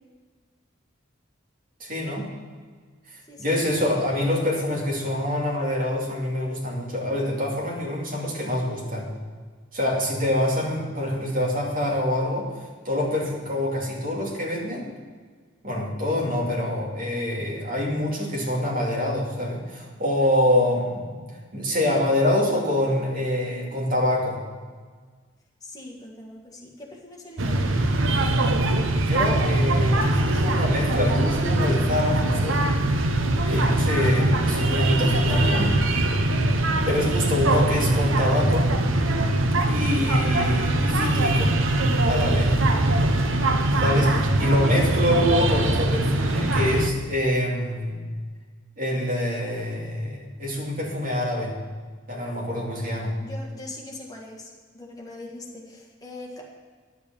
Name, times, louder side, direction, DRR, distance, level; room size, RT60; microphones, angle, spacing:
voice 1, 1.8-2.3 3.4-9.0 9.7-12.4 12.8-14.9 15.6-21.2 21.5-24.4 29.0-32.6 33.5-35.8 36.9-38.7 39.7-41.5 42.1-42.5 43.8-48.0 48.8-51.5 52.1-53.1, left 1 dB, 45° right, -3 dB, 2.6 m, -25 dB
voice 2, 25.6-27.8 43.1-43.8 53.2-56.4, left 2 dB, 20° left, -1 dB, 1.7 m, -42 dB
sound 1, 27.4-46.9, right 1 dB, 70° right, 0.7 m, -22 dB
10.5 x 6.9 x 7.0 m, 1.5 s
head